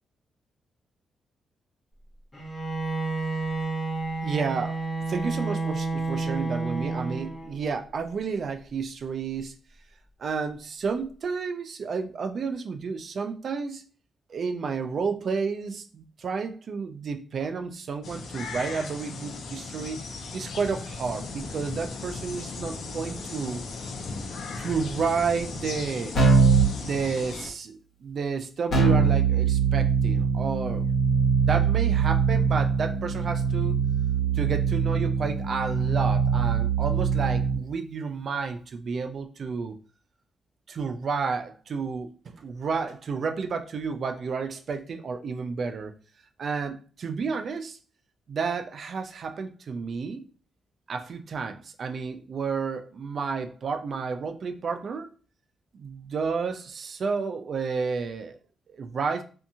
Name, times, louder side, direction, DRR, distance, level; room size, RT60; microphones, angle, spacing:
Bowed string instrument, 2.3-7.7, right 3 dB, 15° left, 0.9 m, -30 dB
voice 1, 4.2-4.8 5.1-9.5 10.2-13.8 14.3-23.6 24.6-26.2 26.8-30.9 31.4-33.7 34.3-39.8 40.7-45.9 46.4-47.8 48.3-50.2 50.9-55.1 55.7-58.4 58.7-59.2, right 5 dB, 45° right, 6 dB, 0.3 m, -31 dB
sound 1, 18.0-27.5, left 3 dB, 70° left, 0.4 m, -37 dB
Keyboard (musical), 26.2-26.7 28.7-37.6, right 6 dB, 50° left, 1.2 m, -22 dB
2.6 x 2.3 x 2.7 m, 0.38 s
wide cardioid pair, 165°, 0 cm